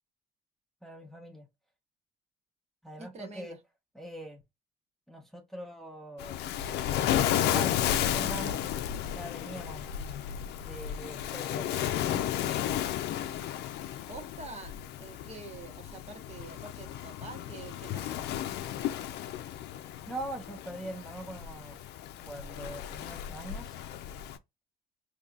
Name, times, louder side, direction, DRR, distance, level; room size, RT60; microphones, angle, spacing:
voice 1, 0.8-1.5 2.8-3.6 3.9-4.4 5.1-6.4 7.2-8.7 9.0-9.9 10.6-12.6 20.1-21.8 22.3-23.8, right 1 dB, ahead, 0.8 m, -42 dB
voice 2, 3.0-3.6 14.1-14.7 15.0-18.3, right 3 dB, 40° right, 1.2 m, -46 dB
Waves surf, 6.2-24.4, left 11 dB, 80° left, 0.5 m, -33 dB
3.9 x 2.9 x 2.3 m
cardioid pair, 110°, 17 cm